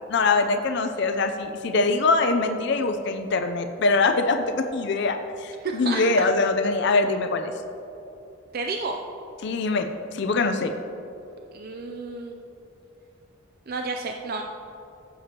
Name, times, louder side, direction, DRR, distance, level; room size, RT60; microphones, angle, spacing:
voice 1, 0.0-7.5 9.4-10.7, left 3 dB, 60° left, 6 dB, 0.5 m, -23 dB
voice 2, 5.6-6.3 8.5-9.0 11.5-12.4 13.7-14.4, right 3 dB, 45° right, 3 dB, 0.4 m, -31 dB
14.5 x 6.9 x 2.9 m, 2.9 s
head